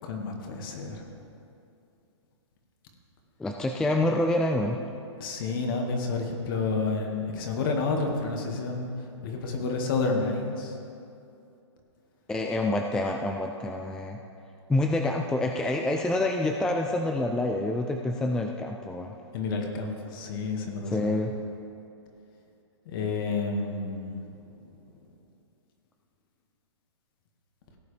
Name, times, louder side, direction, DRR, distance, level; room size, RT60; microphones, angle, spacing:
voice 1, 0.0-1.1 5.2-10.8 19.3-21.2 22.9-24.4, left 3 dB, 45° left, 2 dB, 1.9 m, -30 dB
voice 2, 3.4-4.8 12.3-14.2 14.7-19.1 20.9-21.3, left 2 dB, 5° left, 3 dB, 0.3 m, -27 dB
17.5 x 8.2 x 3.4 m, 2.6 s
hypercardioid pair, 140°, 15 cm